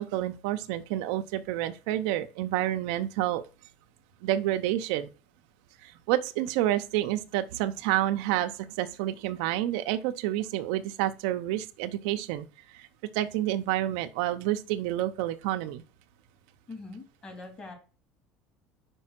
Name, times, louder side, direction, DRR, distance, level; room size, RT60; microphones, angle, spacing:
voice 1, 0.0-3.4 4.2-5.1 5.8-12.9 13.1-15.8, right 13 dB, 80° right, 0.7 m, -29 dB
voice 2, 16.7-17.8, left 3 dB, 30° left, 3.0 m, -43 dB
5.4 x 5.3 x 5.9 m
supercardioid pair, 120°, 3 cm